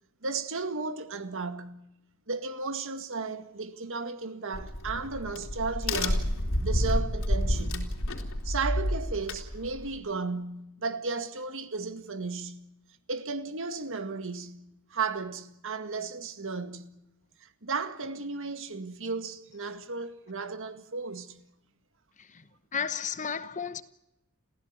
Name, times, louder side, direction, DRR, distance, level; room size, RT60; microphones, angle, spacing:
voice 1, 0.2-1.8 2.3-8.0 8.4-12.6 13.1-14.6 14.9-16.9 17.4-21.4, right 4 dB, 60° right, 2.0 m, -34 dB
Crack, 4.5-10.0, left 1 dB, 65° left, 3.8 m, -29 dB
voice 2, 22.7-23.8, left 6 dB, 35° left, 1.0 m, -33 dB
28.5 x 16.0 x 9.6 m
head